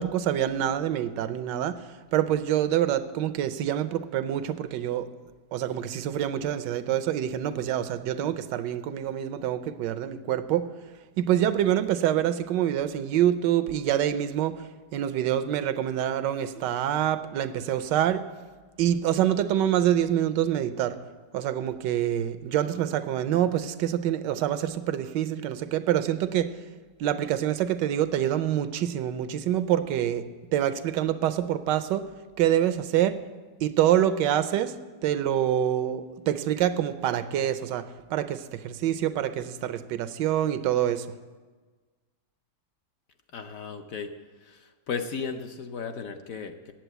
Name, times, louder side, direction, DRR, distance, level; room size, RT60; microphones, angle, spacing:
voice 1, 0.0-1.8 2.1-5.1 5.5-10.7 11.2-14.6 14.9-18.2 18.8-21.0 21.3-26.5 27.0-30.2 30.5-32.0 32.4-33.2 33.6-34.7 35.0-41.0, right 11 dB, 85° right, 12 dB, 1.3 m, -26 dB
voice 2, 43.3-44.1 44.4-46.7, left 5 dB, 65° left, 6 dB, 0.9 m, -35 dB
9.0 x 8.0 x 8.1 m, 1.4 s
omnidirectional pair, 1.9 m